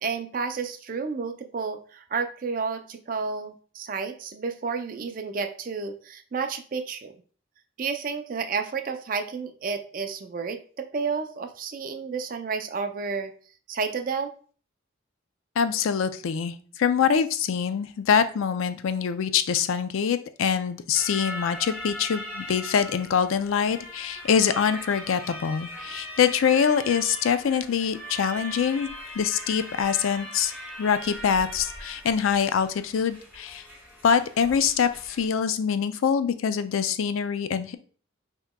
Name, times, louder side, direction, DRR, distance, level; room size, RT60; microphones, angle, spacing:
voice 1, 0.0-7.1 7.8-13.3 13.7-14.3, right 5 dB, 40° right, 7 dB, 0.4 m, -31 dB
voice 2, 15.6-28.9 29.1-30.5 30.8-33.6 34.0-37.7, left 7 dB, 80° left, 11 dB, 0.4 m, -24 dB
sound 1, 20.9-35.3, equal, 15° left, 1.9 m, -40 dB
5.7 x 2.9 x 2.2 m, 0.42 s
head